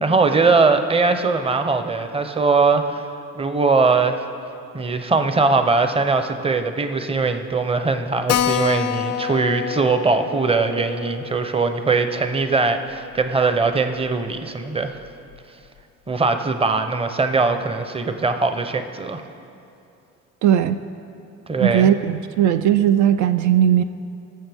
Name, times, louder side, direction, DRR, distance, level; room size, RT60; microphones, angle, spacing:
voice 1, 0.0-3.1 3.4-4.2 4.7-14.9 16.1-19.2 21.5-21.9, right 4 dB, 20° right, 8 dB, 0.7 m, -20 dB
Keyboard (musical), 8.3-13.3 13.6-13.7 14.0-14.1 14.4-14.5 15.0-15.4, left 10 dB, 65° left, 0.5 m, -28 dB
voice 2, 20.4-20.8 21.6-23.8, right 10 dB, 70° right, 10 dB, 0.5 m, -17 dB
19.0 x 7.3 x 3.5 m, 2.6 s
cardioid pair, 90°, 30 cm